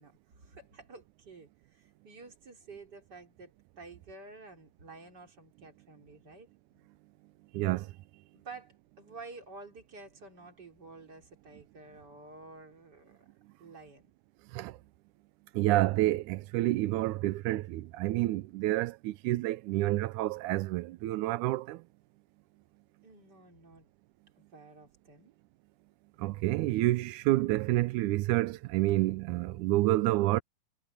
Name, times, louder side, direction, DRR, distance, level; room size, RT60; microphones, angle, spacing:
voice 1, 0.0-3.5 3.8-6.5 8.3-13.2 13.6-14.1 23.0-23.9 24.4-25.3, right 3 dB, 30° right, 4.1 m, -50 dB
voice 2, 7.5-7.9 14.5-14.7 15.6-21.8 26.2-30.4, right 17 dB, 90° right, 1.8 m, -28 dB
omnidirectional pair, 4.2 m